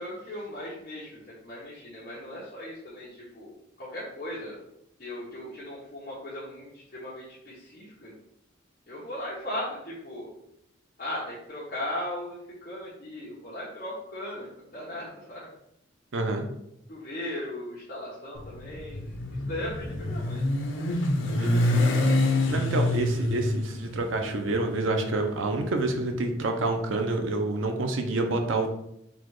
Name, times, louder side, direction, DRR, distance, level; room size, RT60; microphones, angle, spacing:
voice 1, 0.0-4.6 5.0-8.1 8.9-10.3 11.0-15.5 16.9-19.1 19.5-20.4, left 1 dB, 45° left, -8 dB, 1.0 m, -37 dB
voice 2, 16.1-16.5 21.4-21.7 22.5-28.7, right 2 dB, 75° right, 4 dB, 0.6 m, -28 dB
Motorcycle, 18.4-26.6, left 2 dB, 70° left, 0.7 m, -27 dB
4.0 x 2.4 x 4.7 m, 0.79 s
head